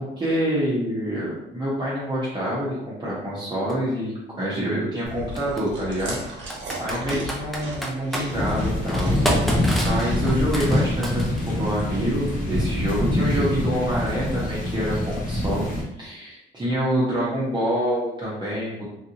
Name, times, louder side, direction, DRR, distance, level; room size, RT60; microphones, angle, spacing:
voice 1, 0.0-6.5 6.8-15.7 16.0-18.9, equal, 25° right, -8 dB, 0.9 m, -27 dB
Computer keyboard, 3.7-3.8 5.4-5.6 6.5-8.3 8.9-11.6, right 1 dB, ahead, 0.6 m, -28 dB
Chewing mastication, 5.0-10.9, right 1 dB, 70° right, 1.1 m, -36 dB
sound 1, 8.3-15.8, left 1 dB, 45° left, 1.0 m, -25 dB
3.2 x 2.6 x 2.9 m, 0.87 s
cardioid pair, 90°, 20 cm